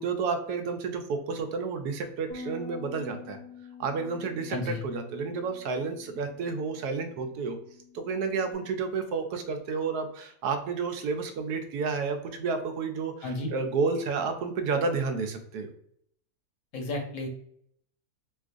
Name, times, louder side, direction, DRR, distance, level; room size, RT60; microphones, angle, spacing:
voice 1, 0.0-3.4 3.8-7.6 7.9-15.7, right 4 dB, 85° right, 6 dB, 1.1 m, -31 dB
Bass guitar, 2.3-8.5, left 6 dB, 80° left, 1.3 m, -47 dB
voice 2, 4.5-4.8 13.2-13.5 16.7-17.3, left 2 dB, 65° left, 3 dB, 1.0 m, -32 dB
4.4 x 2.4 x 2.5 m, 0.69 s
omnidirectional pair, 1.6 m